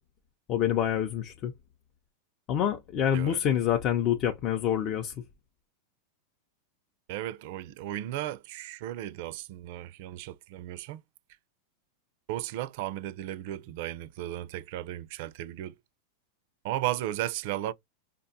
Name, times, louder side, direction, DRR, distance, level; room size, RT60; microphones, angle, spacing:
voice 1, 0.5-1.5 2.5-5.1, left 9 dB, 40° left, 0.5 m, -27 dB
voice 2, 7.1-11.0 12.3-15.7 16.6-17.7, right 14 dB, 60° right, 0.4 m, -35 dB
5.0 x 2.2 x 2.6 m
supercardioid pair, 125°, 0 cm